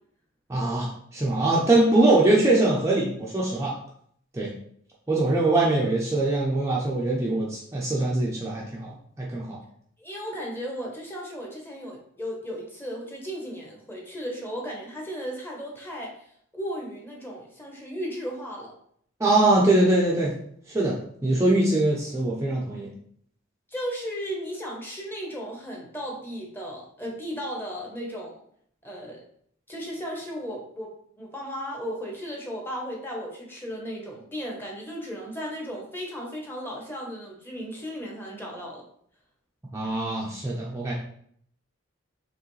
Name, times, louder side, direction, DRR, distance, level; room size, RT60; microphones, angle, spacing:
voice 1, 0.5-3.7 4.3-4.5 5.1-9.6 19.2-20.3 20.7-21.0 21.2-22.9 39.7-40.9, right 2 dB, 15° right, -4 dB, 0.6 m, -22 dB
voice 2, 10.0-16.2 16.5-18.7 23.7-28.4 28.8-29.2 29.7-38.8, equal, 10° left, -1 dB, 1.0 m, -35 dB
4.9 x 3.1 x 3.2 m, 0.65 s
head